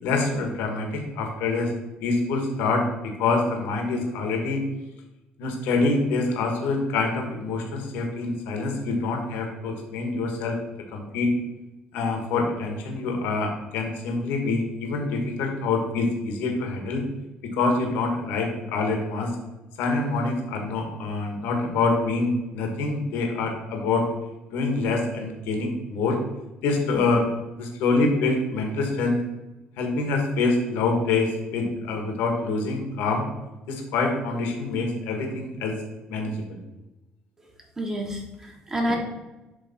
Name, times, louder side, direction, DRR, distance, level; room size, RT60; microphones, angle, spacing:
voice 1, 0.0-1.7 2.0-4.6 5.4-10.6 10.9-11.3 11.9-17.0 17.4-19.3 19.8-24.0 24.5-26.2 26.6-27.3 27.6-29.2 29.8-33.3 33.7-35.7 36.1-36.6, left 3 dB, 85° left, 3 dB, 1.6 m, -26 dB
voice 2, 37.8-39.0, equal, 15° right, 1 dB, 1.6 m, -28 dB
10.0 x 3.4 x 4.3 m, 1.1 s
cardioid pair, 120°, 3 cm